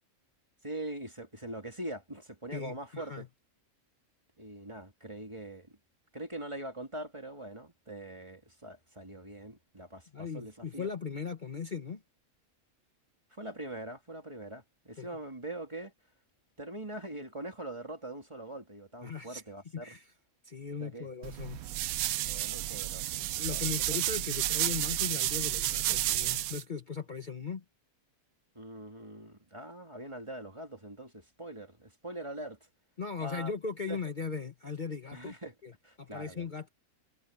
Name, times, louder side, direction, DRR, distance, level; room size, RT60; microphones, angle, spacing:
voice 1, 0.6-3.2 4.4-5.8 6.1-10.9 13.3-15.9 16.6-19.9 20.8-21.1 22.2-23.2 23.5-23.6 23.9-24.0 28.5-32.6 33.2-33.5 33.9-34.0 35.1-35.5 35.8-36.5, right 1 dB, 20° right, 2.6 m, -43 dB
voice 2, 2.5-3.3 10.1-12.0 15.0-15.1 19.0-19.4 19.7-20.1 20.4-21.6 23.2-27.6 33.0-35.3 35.6-35.7 36.0-36.7, left 5 dB, 35° left, 1.3 m, -38 dB
sound 1, 21.2-26.6, right 14 dB, 80° right, 1.0 m, -31 dB
omnidirectional pair, 1.5 m